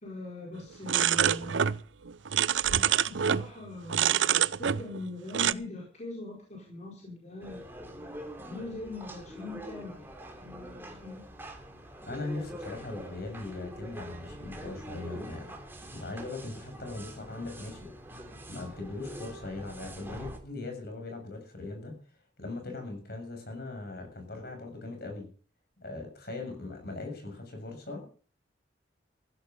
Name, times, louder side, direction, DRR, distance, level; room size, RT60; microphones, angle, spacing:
voice 1, 0.0-1.6 2.7-7.8 8.5-10.1 11.0-11.3, left 2 dB, 40° left, -1 dB, 4.6 m, -41 dB
sound 1, 0.9-3.5 3.9-5.0 5.3-5.5, right 9 dB, 85° right, 0.6 m, -26 dB
sound 2, 7.4-20.4, right 1 dB, 10° right, 3.2 m, -44 dB
voice 2, 12.1-15.5 15.9-17.9 18.5-22.0 22.4-25.3 25.8-28.1, left 2 dB, 55° left, 4 dB, 7.1 m, -39 dB
15.5 x 12.5 x 5.4 m, 0.42 s
head